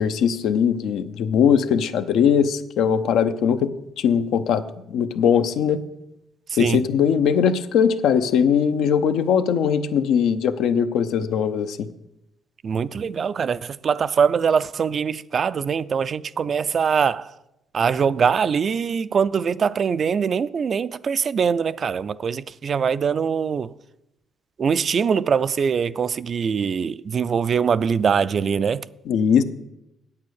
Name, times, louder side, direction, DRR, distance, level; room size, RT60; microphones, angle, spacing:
voice 1, 0.0-4.6 4.9-5.8 6.6-11.9 29.1-29.4, left 7 dB, 80° left, 0.6 m, -20 dB
voice 2, 6.5-6.8 12.6-17.3 17.7-23.7 24.6-28.9, right 6 dB, 50° right, 0.4 m, -22 dB
8.7 x 8.4 x 6.4 m
cardioid pair, 90°, 0 cm